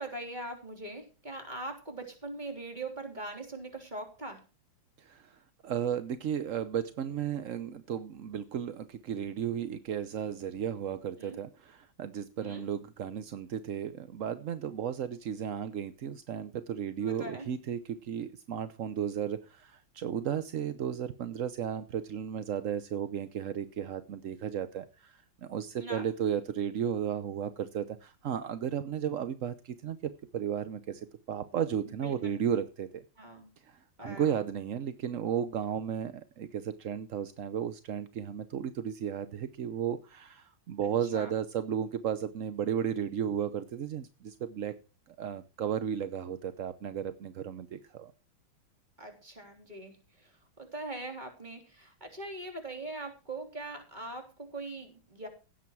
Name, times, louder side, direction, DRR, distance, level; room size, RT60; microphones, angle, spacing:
voice 1, 0.0-4.4 11.2-11.4 12.4-12.6 17.0-17.5 25.8-26.1 31.8-32.3 33.2-33.5 34.0-34.4 41.1-41.3 49.0-55.3, right 2 dB, 20° right, 4 dB, 3.7 m, -41 dB
voice 2, 5.0-30.0 30.3-33.0 33.6-44.8 45.2-48.1, right 9 dB, 55° right, 12 dB, 0.9 m, -34 dB
16.5 x 8.5 x 4.7 m, 0.32 s
omnidirectional pair, 2.2 m